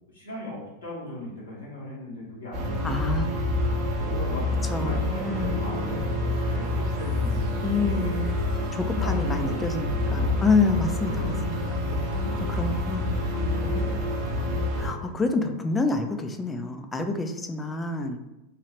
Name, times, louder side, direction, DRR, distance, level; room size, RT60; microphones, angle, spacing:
voice 1, 0.1-3.1 3.9-8.1 8.7-10.7 11.0-12.7 13.3-15.2, left 1 dB, 85° left, -7 dB, 1.4 m, -39 dB
sound 1, 2.5-14.9, left 2 dB, 50° right, 0.7 m, -27 dB
voice 2, 2.8-3.5 4.7-5.6 7.6-8.4 8.7-11.8 12.4-13.1 14.8-18.2, left 3 dB, 15° left, 6 dB, 0.3 m, -28 dB
3.0 x 2.3 x 2.9 m, 0.96 s
figure-of-eight pair, 90°, 0 cm